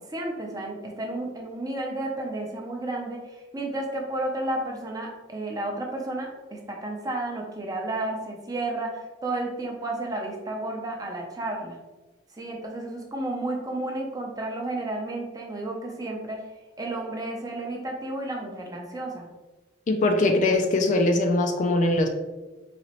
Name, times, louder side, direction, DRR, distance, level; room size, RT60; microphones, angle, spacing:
voice 1, 0.1-3.2 3.5-11.8 12.3-16.4 16.8-19.3, right 2 dB, 20° right, 0 dB, 0.6 m, -32 dB
voice 2, 19.9-22.1, left 2 dB, 45° left, 4 dB, 0.4 m, -21 dB
4.1 x 2.9 x 2.9 m, 1.1 s
head